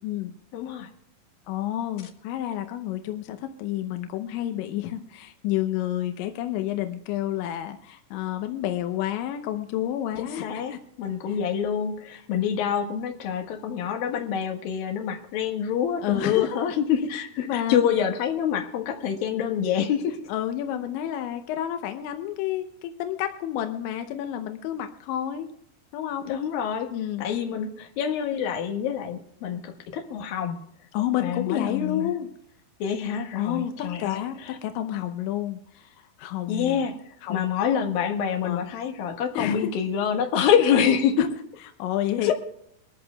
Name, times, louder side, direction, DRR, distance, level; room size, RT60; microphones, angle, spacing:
voice 1, 0.5-0.9 10.2-20.2 26.2-26.9 27.2-30.6 31.2-32.1 32.8-34.6 36.5-41.3 42.2-42.3, left 8 dB, 60° left, 4 dB, 2.7 m, -26 dB
voice 2, 1.5-10.8 16.0-16.5 17.4-17.8 20.3-25.5 25.9-26.3 26.9-27.2 30.9-32.3 33.4-36.9 37.2-37.5 38.4-38.6 39.4-39.7 41.2-41.3 41.8-42.3, left 12 dB, 75° left, 6 dB, 3.0 m, -30 dB
23.5 x 14.0 x 2.3 m, 0.72 s
omnidirectional pair, 5.6 m